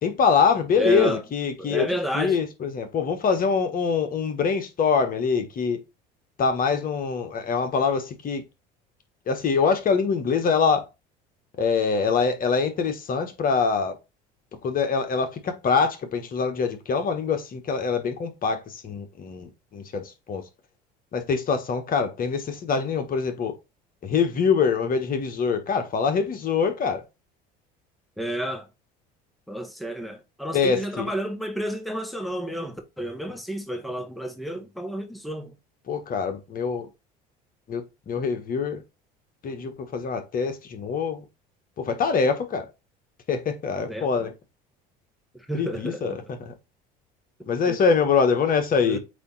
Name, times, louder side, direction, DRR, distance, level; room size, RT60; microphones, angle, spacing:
voice 1, 0.0-1.9 2.1-5.8 6.4-8.4 9.3-10.9 11.6-14.0 14.6-20.4 21.1-23.6 24.0-27.0 30.5-31.1 35.9-36.9 37.7-38.8 39.4-41.2 41.8-42.7 43.3-44.3 45.5-46.5 47.5-49.0, left 5 dB, 45° left, 1.3 m, -24 dB
voice 2, 0.7-1.2 1.6-2.4 28.2-28.7 29.5-35.5 43.9-44.3 45.3-46.3 47.7-47.8 48.8-49.0, right 1 dB, ahead, 1.3 m, -31 dB
8.2 x 2.8 x 4.0 m
hypercardioid pair, 80°, 21 cm